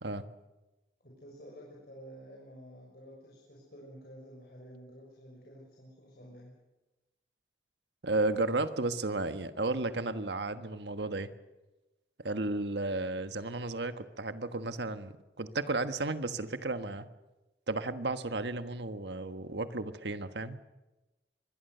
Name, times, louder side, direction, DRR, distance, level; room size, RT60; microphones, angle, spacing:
voice 1, 1.0-6.5, equal, 60° left, -3 dB, 6.4 m, -51 dB
voice 2, 8.0-11.3 12.2-17.1 17.7-20.6, right 2 dB, 85° right, 10 dB, 1.4 m, -33 dB
25.0 x 21.0 x 6.8 m, 1.1 s
head